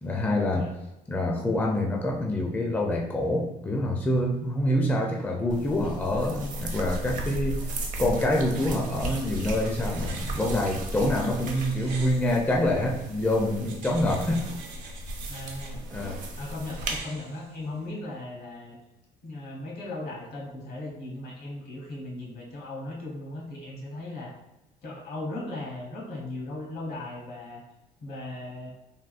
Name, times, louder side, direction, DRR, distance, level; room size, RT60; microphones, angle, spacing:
voice 1, 0.0-0.7 1.1-7.7 8.0-14.4 15.9-16.2, left 1 dB, 10° left, 0 dB, 0.4 m, -26 dB
sound 1, 5.5-17.0, right 1 dB, 50° right, 0.6 m, -35 dB
sound 2, 8.9-13.1 13.6-15.7 16.6-17.9, right 4 dB, 85° right, 0.7 m, -47 dB
voice 2, 15.3-15.8 16.4-18.8 19.2-24.3 24.8-27.6 28.0-28.7, left 2 dB, 70° left, -2 dB, 1.0 m, -37 dB
3.5 x 2.2 x 2.4 m, 0.96 s
cardioid pair, 110°, 17 cm